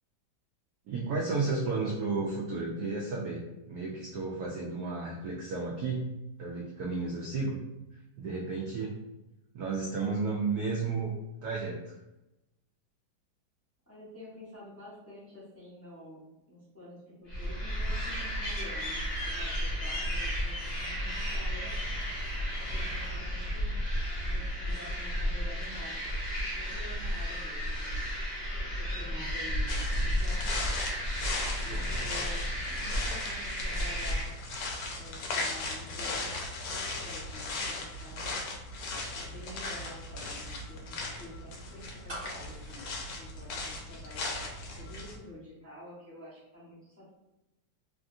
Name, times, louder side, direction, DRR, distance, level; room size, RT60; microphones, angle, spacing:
voice 1, 0.9-6.1 6.4-7.7 8.2-9.0 9.5-11.1 11.4-11.9 31.7-32.0, right 4 dB, 75° right, -3 dB, 0.8 m, -33 dB
voice 2, 13.9-21.7 22.6-23.8 24.2-26.1 26.5-28.0 28.6-30.6 31.6-34.3 34.9-36.3 36.7-38.4 39.1-47.2, left 1 dB, 10° left, -9 dB, 0.7 m, -49 dB
sound 1, 17.3-34.2, equal, 60° left, 0.6 m, -33 dB
sound 2, 29.7-45.2, left 3 dB, 75° left, 1.2 m, -37 dB
sound 3, 42.1-44.1 44.4-44.5, right 1 dB, 20° right, 0.9 m, -45 dB
3.2 x 2.4 x 2.6 m, 0.93 s
omnidirectional pair, 2.2 m